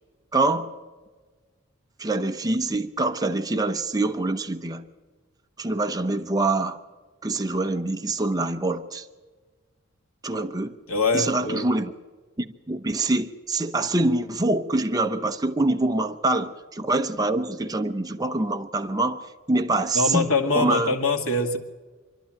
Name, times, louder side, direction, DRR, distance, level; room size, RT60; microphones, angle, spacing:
voice 1, 0.3-0.8 2.0-4.8 5.6-6.8 7.2-9.0 10.2-10.8 11.1-11.9 12.4-20.9, right 2 dB, 20° right, 0.7 m, -25 dB
voice 2, 10.9-11.7 19.9-21.6, left 3 dB, 80° left, 2.2 m, -23 dB
26.5 x 11.5 x 8.9 m
head